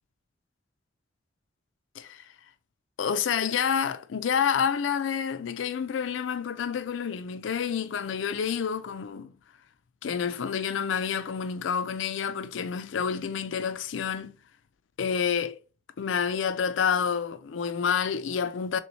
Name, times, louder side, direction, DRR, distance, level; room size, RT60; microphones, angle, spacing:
voice 1, 3.0-9.3 10.0-14.4 15.0-15.6 16.0-18.8, left 7 dB, 80° left, 0.4 m, -28 dB
3.5 x 3.0 x 4.0 m
head